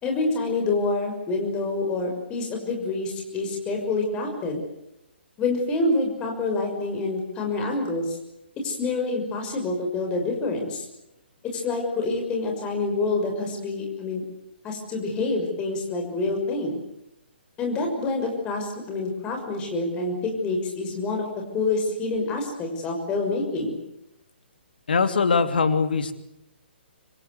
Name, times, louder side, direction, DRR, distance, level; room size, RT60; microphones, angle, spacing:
voice 1, 0.0-4.6 5.4-8.2 8.6-10.8 11.4-14.2 14.6-16.8 17.6-21.3 21.5-23.8, left 3 dB, 15° left, 2 dB, 6.1 m, -27 dB
voice 2, 24.9-26.1, left 5 dB, 55° left, 9 dB, 2.8 m, -21 dB
26.5 x 25.0 x 8.1 m, 0.90 s
figure-of-eight pair, 130°, 6 cm